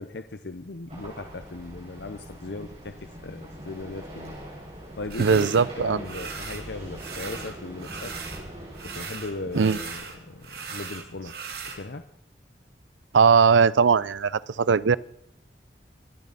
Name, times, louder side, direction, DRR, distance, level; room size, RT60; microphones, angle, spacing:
voice 1, 0.0-4.3 5.0-5.5 5.8-8.1 8.8-11.4 11.7-12.0, left 3 dB, 70° left, 8 dB, 0.8 m, -38 dB
sound 1, 0.9-10.8, right 1 dB, 35° right, 6.2 m, -42 dB
sound 2, 5.1-5.7 6.0-6.7 6.9-8.4 8.7-11.8, right 5 dB, 55° right, 2.2 m, -38 dB
voice 2, 5.2-6.0 9.5-9.8 13.1-15.0, right 5 dB, 90° right, 20 dB, 0.5 m, -19 dB
25.5 x 11.0 x 4.1 m, 0.68 s
head